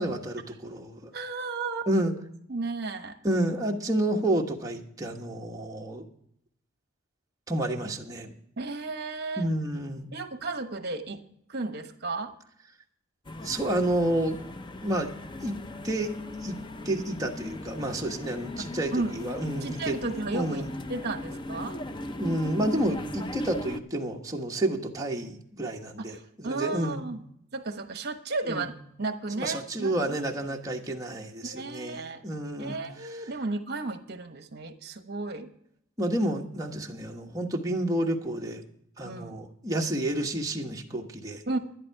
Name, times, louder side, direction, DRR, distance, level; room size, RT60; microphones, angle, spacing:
voice 1, 0.0-1.1 1.9-2.1 3.2-6.0 7.5-8.3 9.4-10.1 13.4-14.4 14.8-15.1 15.4-15.5 15.8-16.1 16.4-16.5 16.8-20.0 20.3-20.7 22.2-27.0 28.5-28.7 29.3-32.8 36.0-38.6 39.0-41.4, right 1 dB, 15° right, 0 dB, 1.3 m, -30 dB
voice 2, 1.1-1.9 2.5-3.2 8.6-9.5 10.1-11.2 11.5-12.3 18.6-19.2 19.6-21.8 24.8-24.9 26.0-27.2 27.5-30.6 31.4-32.2 32.6-35.5 39.0-39.4 41.5-41.6, right 3 dB, 55° right, 8 dB, 1.2 m, -34 dB
sound 1, 13.2-23.8, left 1 dB, 25° left, 0.6 m, -38 dB
12.0 x 11.0 x 4.7 m, 0.72 s
head